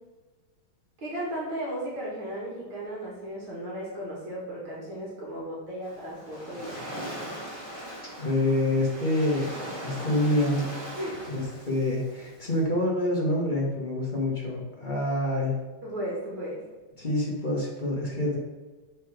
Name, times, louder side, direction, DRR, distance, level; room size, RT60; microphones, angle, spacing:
voice 1, 1.0-6.8 11.0-11.1 15.8-16.6, right 1 dB, 70° right, -5 dB, 2.6 m, -35 dB
Waves surf, 5.8-12.6, equal, 10° right, 2.2 m, -40 dB
voice 2, 8.2-10.6 11.3-15.6 17.0-18.4, left 1 dB, 25° left, -3 dB, 1.2 m, -27 dB
6.8 x 4.8 x 4.8 m, 1.3 s
omnidirectional pair, 2.3 m